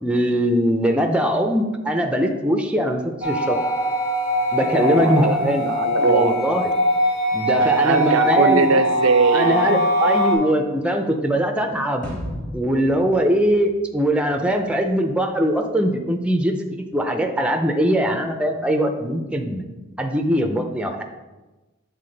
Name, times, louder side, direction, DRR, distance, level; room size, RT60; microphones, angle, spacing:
voice 1, 0.0-3.6 4.5-5.7 6.0-6.7 7.3-8.7 9.3-12.1 12.5-19.6 20.0-21.0, equal, 5° right, 4 dB, 0.4 m, -21 dB
sound 1, 3.2-10.3, equal, 80° left, 1.9 m, -21 dB
voice 2, 4.7-6.4 7.6-9.8, right 4 dB, 80° right, 9 dB, 0.5 m, -22 dB
sound 2, 12.0-14.5, equal, 40° left, 1.8 m, -35 dB
7.5 x 3.5 x 3.9 m, 1.1 s
head